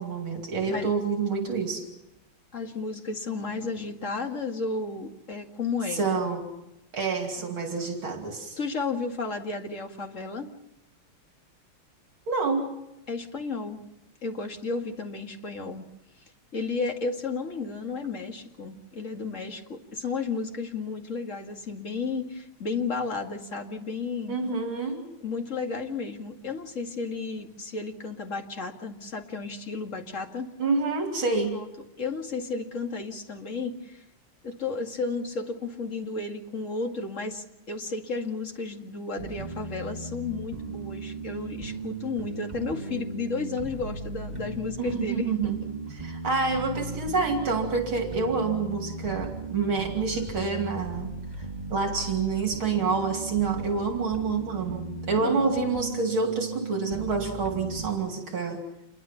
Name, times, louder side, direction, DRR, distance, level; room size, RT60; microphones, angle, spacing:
voice 1, 0.0-1.9 5.9-6.5 6.9-8.6 12.3-12.7 24.3-25.0 30.6-31.6 44.8-51.1 51.4-51.5 51.7-58.6, right 4 dB, 75° right, 3 dB, 3.5 m, -28 dB
voice 2, 0.6-0.9 2.5-6.1 8.6-10.5 13.1-13.8 14.2-15.9 16.5-24.4 25.2-30.5 31.5-31.6 32.0-34.0 34.4-45.3 55.2-55.6, left 4 dB, 35° left, 4 dB, 2.3 m, -33 dB
sound 1, 39.2-57.9, right 3 dB, 20° right, 3.4 m, -37 dB
28.0 x 22.5 x 5.8 m, 0.88 s
omnidirectional pair, 2.3 m